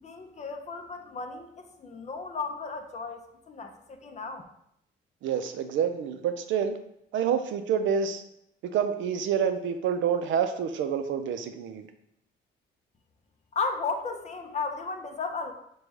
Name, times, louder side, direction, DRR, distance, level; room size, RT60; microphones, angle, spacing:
voice 1, 0.0-4.4 13.5-15.5, left 4 dB, 35° left, 6 dB, 0.5 m, -34 dB
voice 2, 5.2-6.7 7.1-8.2 8.7-11.9, right 7 dB, 75° right, 8 dB, 0.4 m, -27 dB
5.0 x 2.2 x 3.1 m, 0.76 s
cardioid pair, 90°, 20 cm